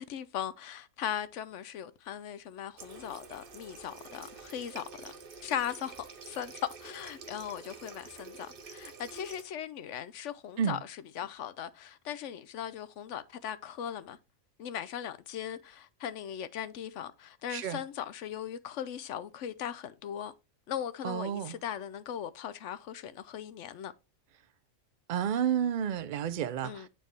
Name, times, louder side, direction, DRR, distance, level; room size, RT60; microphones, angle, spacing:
voice 1, 0.0-5.1 5.4-14.2 14.6-20.3 20.7-23.9 26.6-26.9, left 9 dB, 65° left, 0.9 m, -39 dB
Water tap faucet, 2.8-9.5, right 4 dB, 45° right, 1.0 m, -48 dB
voice 2, 17.5-17.8 21.0-21.5 25.1-26.9, right 9 dB, 80° right, 0.4 m, -31 dB
9.2 x 4.4 x 3.2 m
omnidirectional pair, 1.5 m